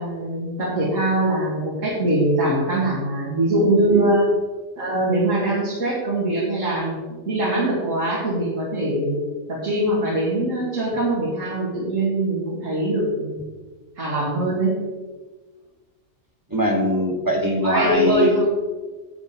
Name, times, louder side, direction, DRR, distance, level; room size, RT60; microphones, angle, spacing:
voice 1, 0.0-4.3 4.8-7.0 7.3-13.4 14.0-14.8 17.6-18.5, right 1 dB, 90° right, -6 dB, 2.4 m, -22 dB
voice 2, 16.5-18.4, equal, 15° right, 2 dB, 1.1 m, -22 dB
10.0 x 7.0 x 4.4 m, 1.3 s
omnidirectional pair, 1.3 m